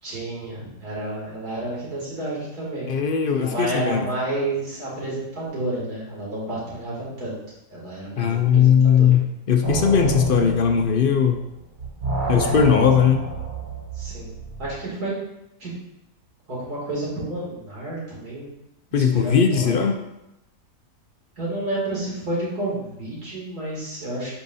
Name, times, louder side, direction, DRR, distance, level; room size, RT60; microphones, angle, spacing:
voice 1, 0.0-2.9 3.4-7.4 7.7-9.2 12.4-12.6 13.9-14.3 14.6-15.2 15.6-15.7 16.5-18.5 18.9-19.8 21.4-24.3, right 2 dB, 90° right, -6 dB, 3.2 m, -30 dB
voice 2, 2.9-4.1 8.2-11.4 12.3-13.3 18.9-20.0, left 7 dB, 55° left, 5 dB, 0.6 m, -19 dB
sound 1, 9.6-11.5 11.8-14.8, right 3 dB, 35° right, 1.2 m, -29 dB
10.0 x 5.1 x 2.7 m, 0.88 s
omnidirectional pair, 1.6 m